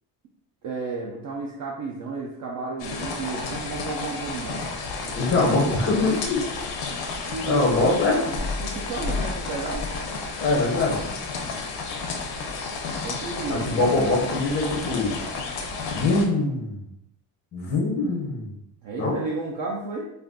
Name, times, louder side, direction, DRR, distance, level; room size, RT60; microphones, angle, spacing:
voice 1, 0.6-6.2 7.2-9.9 12.8-14.3 18.0-18.2 18.8-20.0, right 3 dB, 45° right, -2 dB, 0.4 m, -33 dB
sound 1, 2.8-16.3, left 4 dB, 75° left, 0.6 m, -31 dB
voice 2, 5.2-6.4 7.5-8.2 10.4-11.0 13.5-15.2 15.8-16.9 17.5-18.5 19.0-19.1, left 3 dB, 25° left, -3 dB, 0.5 m, -23 dB
2.4 x 2.2 x 3.5 m, 0.80 s
cardioid pair, 155°, 45 cm